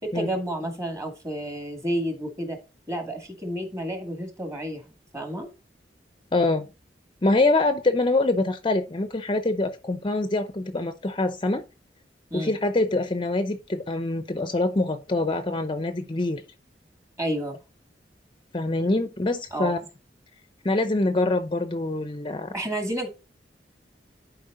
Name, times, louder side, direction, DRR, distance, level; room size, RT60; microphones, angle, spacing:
voice 1, 0.0-2.6 2.9-4.8 5.1-5.5 12.3-12.6 17.2-17.6 19.5-19.9 22.5-23.1, right 1 dB, 20° right, 2.3 m, -30 dB
voice 2, 6.3-6.7 7.2-11.6 12.3-16.4 18.5-19.8 20.6-22.5, left 2 dB, 30° left, 0.7 m, -25 dB
11.0 x 4.7 x 3.8 m
head